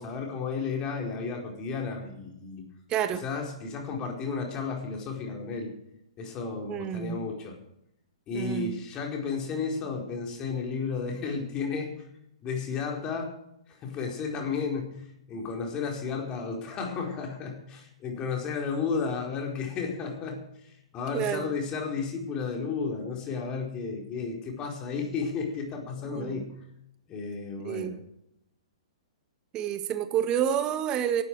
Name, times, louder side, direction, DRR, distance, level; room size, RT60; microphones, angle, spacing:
voice 1, 0.0-2.6 3.2-5.7 6.2-7.6 8.3-11.9 12.4-13.3 13.7-26.5 27.1-28.0, left 5 dB, 25° left, 4.7 m, -33 dB
voice 2, 2.9-3.2 6.7-7.2 8.3-8.7 21.1-21.5 26.1-26.4 27.6-28.0 29.5-31.2, right 9 dB, 25° right, 1.7 m, -29 dB
18.5 x 12.5 x 4.9 m
figure-of-eight pair, 115°, 3 cm